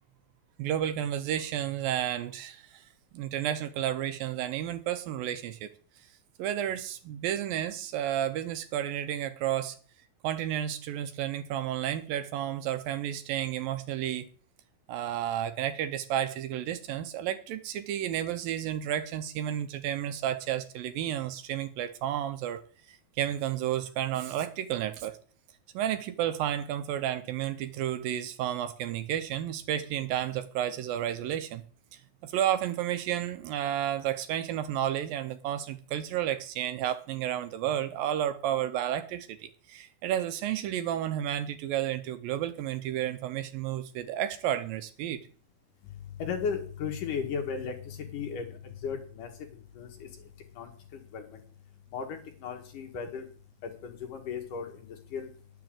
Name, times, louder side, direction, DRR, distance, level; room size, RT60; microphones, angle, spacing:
voice 1, 0.6-2.8 3.1-5.7 6.4-9.8 10.2-14.3 14.9-22.6 22.9-25.2 25.7-31.6 32.2-45.2, right 11 dB, 80° right, 2.4 m, -31 dB
voice 2, 45.8-49.3 49.8-50.1 50.6-51.4 51.9-53.3 53.6-55.3, left 6 dB, 60° left, 3.0 m, -36 dB
11.0 x 7.0 x 7.5 m
omnidirectional pair, 4.4 m